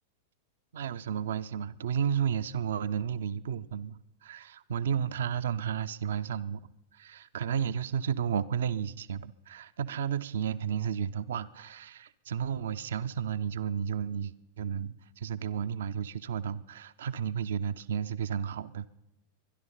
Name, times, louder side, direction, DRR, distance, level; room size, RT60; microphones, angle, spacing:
voice 1, 0.7-6.6 6.9-18.9, right 8 dB, 60° right, 0.5 m, -32 dB
23.5 x 11.0 x 5.6 m
figure-of-eight pair, 90°, 0 cm